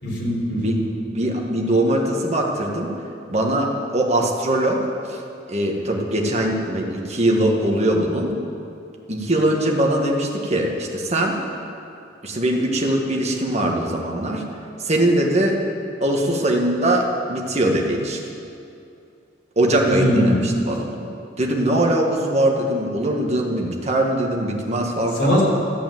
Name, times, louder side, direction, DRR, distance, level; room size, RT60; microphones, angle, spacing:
voice 1, 0.0-0.8 19.8-20.4 25.2-25.4, equal, 70° left, -4 dB, 3.9 m, -20 dB
voice 2, 1.1-2.9 3.3-5.2 5.5-8.3 9.1-11.4 12.2-14.4 14.8-15.6 16.0-18.2 19.6-21.1 21.4-25.4, right 1 dB, 35° right, 0 dB, 1.6 m, -21 dB
14.0 x 8.4 x 7.8 m, 2.5 s
head